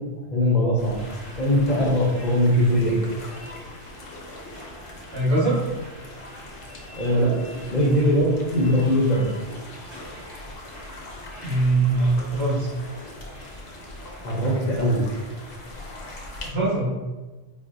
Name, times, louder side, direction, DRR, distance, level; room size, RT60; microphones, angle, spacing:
voice 1, 0.3-1.0 1.4-2.9 6.9-9.3 14.2-15.0, equal, 50° left, -4 dB, 0.7 m, -21 dB
sound 1, 0.8-16.5, left 1 dB, 75° left, 0.9 m, -42 dB
sound 2, 0.8-16.5, left 1 dB, 30° right, 1.2 m, -46 dB
voice 2, 5.1-5.6 11.4-12.7 16.4-16.9, right 2 dB, 70° right, -7 dB, 1.5 m, -22 dB
4.1 x 2.0 x 2.5 m, 1.2 s
omnidirectional pair, 1.1 m